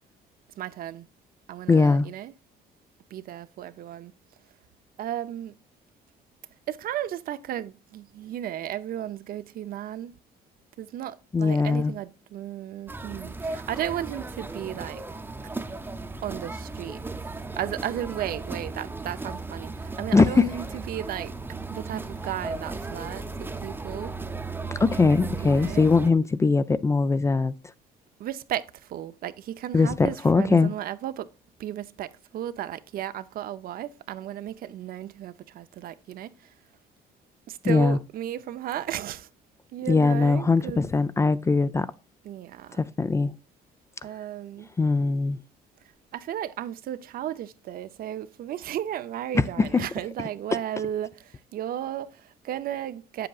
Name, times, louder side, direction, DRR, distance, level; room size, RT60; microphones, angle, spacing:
voice 1, 0.6-1.1 1.5-2.3 3.1-4.1 5.0-5.6 6.7-10.1 10.8-15.0 16.2-17.0 17.6-21.3 21.7-24.1 25.4-25.9 28.2-31.3 31.6-36.5 37.5-39.3 39.7-40.8 42.2-42.8 44.0-44.7 46.1-53.3, right 11 dB, 60° right, 0.6 m, -34 dB
voice 2, 1.7-2.1 11.3-11.9 20.1-20.5 24.8-27.5 29.7-30.7 37.6-38.0 39.9-41.9 42.8-43.3 44.8-45.4 49.6-49.8, left 4 dB, 15° left, 0.4 m, -21 dB
sound 1, 12.9-26.1, right 3 dB, 10° right, 0.7 m, -36 dB
8.2 x 7.7 x 2.4 m
cardioid pair, 110°, 17 cm